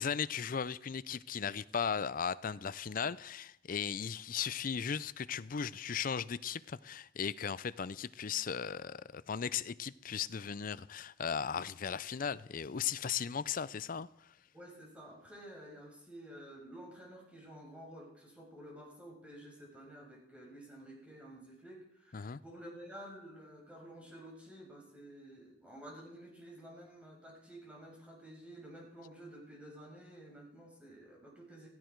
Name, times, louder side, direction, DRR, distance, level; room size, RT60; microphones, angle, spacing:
voice 1, 0.0-14.3 22.1-22.4, left 7 dB, 50° left, 0.5 m, -37 dB
voice 2, 14.5-31.7, right 1 dB, 5° right, 6.0 m, -51 dB
17.0 x 14.5 x 4.6 m
head